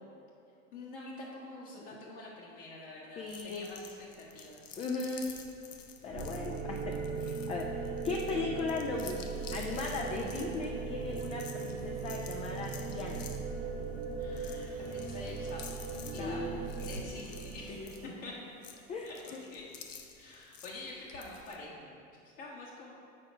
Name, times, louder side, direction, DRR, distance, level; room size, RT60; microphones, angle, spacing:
voice 1, 0.7-4.6 6.5-6.7 14.2-15.8 16.1-16.4 16.8-17.8 18.0-18.3 19.0-19.7 20.2-21.9 22.2-22.9, left 2 dB, 50° left, -5 dB, 1.2 m, -46 dB
voice 2, 3.2-3.7 4.8-5.3 6.0-7.0 7.5-7.7 8.0-13.2 16.2-16.6 17.7-17.9 18.9-19.4, left 3 dB, 15° left, 0 dB, 0.4 m, -37 dB
sound 1, 3.3-21.6, left 6 dB, 75° left, 0.7 m, -51 dB
sound 2, 6.1-18.1, right 4 dB, 40° right, 1.2 m, -38 dB
7.8 x 4.8 x 4.9 m, 2.5 s
figure-of-eight pair, 75°, 40 cm